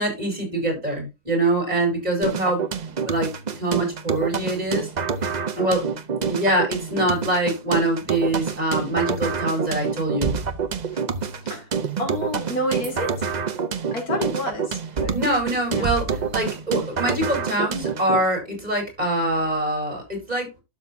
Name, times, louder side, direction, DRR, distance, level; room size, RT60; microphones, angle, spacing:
voice 1, 0.0-2.6 3.0-3.3 3.6-4.9 5.6-5.8 6.3-10.4 15.1-20.5, right 1 dB, 25° right, 4.4 m, -24 dB
sound 1, 2.2-18.2, right 6 dB, 50° right, 0.5 m, -27 dB
voice 2, 12.0-13.3 13.9-15.2 15.7-15.9, left 1 dB, 65° left, 2.8 m, -29 dB
12.0 x 6.2 x 2.7 m
omnidirectional pair, 1.7 m